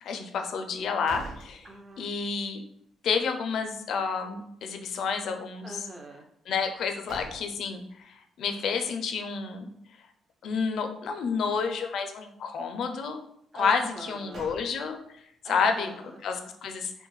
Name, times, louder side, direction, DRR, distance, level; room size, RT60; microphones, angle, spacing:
voice 1, 0.0-1.6 2.0-2.6 3.0-5.8 6.5-9.7 10.4-13.2 13.5-15.0 15.4-15.9 16.2-16.9, left 5 dB, 70° left, 6 dB, 0.4 m, -30 dB
sound 1, 0.7-2.3 2.7-2.8 6.6-7.9 13.9-15.2, right 2 dB, 75° right, 1.0 m, -46 dB
voice 2, 1.6-2.2 5.6-6.3 13.5-14.6 15.4-16.2, right 2 dB, 30° right, 3 dB, 0.5 m, -43 dB
3.0 x 2.1 x 3.0 m, 0.74 s
cardioid pair, 90°, 0 cm